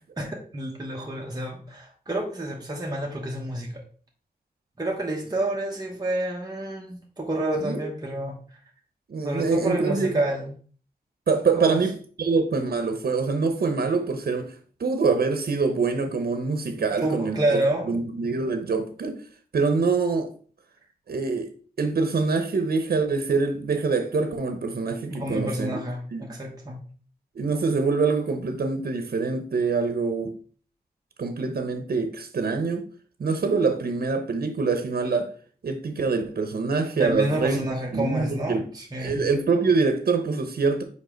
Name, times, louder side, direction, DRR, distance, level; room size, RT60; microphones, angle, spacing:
voice 1, 0.2-3.8 4.8-8.3 9.2-10.5 11.5-11.8 17.0-18.0 25.1-26.8 37.0-39.2, right 1 dB, 25° right, 1.1 m, -29 dB
voice 2, 7.6-7.9 9.1-10.2 11.3-14.5 14.8-17.6 17.9-19.2 19.5-20.3 21.1-21.5 21.8-25.8 26.1-26.2 27.3-30.4 31.2-32.8 33.2-35.3 35.6-37.6 37.9-38.6 39.0-40.8, right 4 dB, 80° right, 0.8 m, -25 dB
5.3 x 4.8 x 3.9 m
wide cardioid pair, 110°, 16 cm